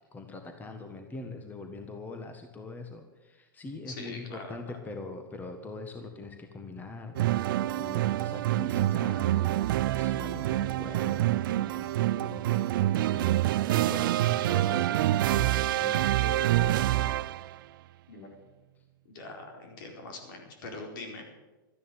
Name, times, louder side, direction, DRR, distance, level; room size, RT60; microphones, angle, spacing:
voice 1, 0.1-17.2, left 3 dB, 15° left, 5 dB, 1.5 m, -43 dB
voice 2, 3.9-4.5 18.1-18.3 19.0-21.2, left 3 dB, 65° left, 3 dB, 4.4 m, -42 dB
sound 1, 7.2-17.6, right 14 dB, 70° right, 0.4 m, -26 dB
13.0 x 10.5 x 9.2 m, 1.1 s
hypercardioid pair, 130°, 12 cm